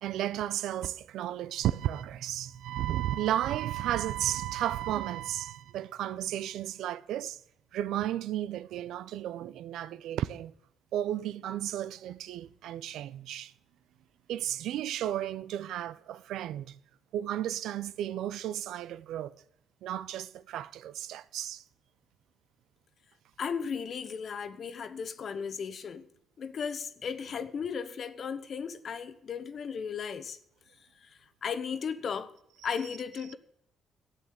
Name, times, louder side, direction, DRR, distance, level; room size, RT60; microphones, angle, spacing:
voice 1, 0.0-7.4 7.7-10.5 10.9-13.5 14.3-16.8 17.1-19.4 19.8-21.6, right 12 dB, 85° right, 0.5 m, -33 dB
voice 2, 23.4-26.1 26.4-30.4 31.0-32.3 32.6-33.3, left 6 dB, 55° left, 1.0 m, -36 dB
13.5 x 8.2 x 7.5 m
cardioid pair, 90°, 0 cm